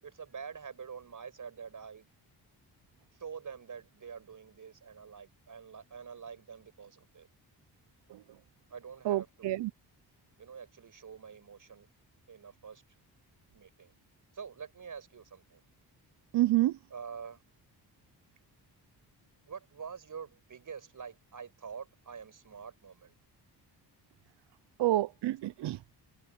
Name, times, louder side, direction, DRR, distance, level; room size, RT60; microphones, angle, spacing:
voice 1, 0.0-2.1 3.2-7.3 8.7-9.5 10.4-11.9 12.3-12.8 13.5-13.9 14.3-15.6 16.9-17.4 19.5-23.1, right 6 dB, 50° right, 6.2 m, -46 dB
voice 2, 9.1-9.7 16.3-16.8 24.8-25.8, right 15 dB, 85° right, 0.6 m, -28 dB
cardioid pair, 110°, 40 cm